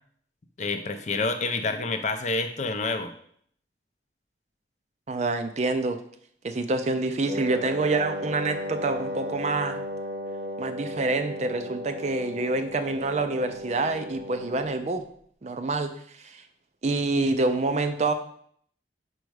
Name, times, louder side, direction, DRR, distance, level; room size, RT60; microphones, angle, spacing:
voice 1, 0.6-3.1, left 3 dB, 40° left, 7 dB, 0.5 m, -28 dB
voice 2, 5.1-6.0 6.4-9.8 10.6-15.1 15.4-16.4 16.8-18.1, right 3 dB, 40° right, 8 dB, 0.4 m, -27 dB
Wind instrument woodwind instrument, 7.3-14.9, left 1 dB, 55° right, 1.0 m, -35 dB
5.2 x 4.6 x 4.8 m, 0.64 s
head